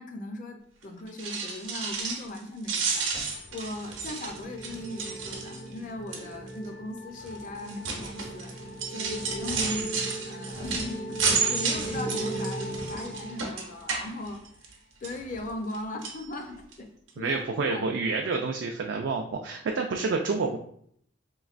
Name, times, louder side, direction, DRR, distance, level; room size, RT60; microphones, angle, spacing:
voice 1, 0.0-8.5 8.9-11.1 11.4-14.4 15.0-16.9 17.2-17.4 17.7-18.0, left 1 dB, 40° left, 4 dB, 0.5 m, -38 dB
sound 1, 1.1-2.4 2.6-5.8 6.1-6.5 7.2-14.7 15.0-15.8 16.0-16.2 16.7-16.8 17.1-17.2, right 5 dB, 85° right, 0.7 m, -32 dB
sound 2, 3.5-14.1, right 1 dB, 80° left, 1.2 m, -38 dB
voice 2, 17.2-20.6, right 4 dB, 65° right, 2 dB, 0.3 m, -28 dB
3.3 x 3.0 x 2.4 m, 0.64 s
head